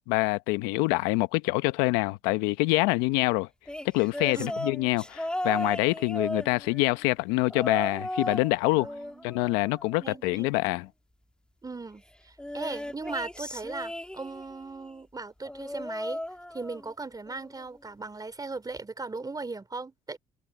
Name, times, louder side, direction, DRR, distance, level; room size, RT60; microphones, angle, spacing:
voice 1, 0.1-3.5 3.8-8.9 9.2-10.9, left 22 dB, 85° left, 0.9 m, -26 dB
sound 1, 3.7-7.0 7.5-8.5 8.8-10.3 12.4-14.6 15.5-16.9 17.3-17.6 18.8-18.9, left 1 dB, 5° left, 2.6 m, -36 dB
voice 2, 8.7-9.5 10.0-10.5 11.6-16.2 16.5-20.2, right 3 dB, 20° right, 2.9 m, -38 dB
supercardioid pair, 65°, 17 cm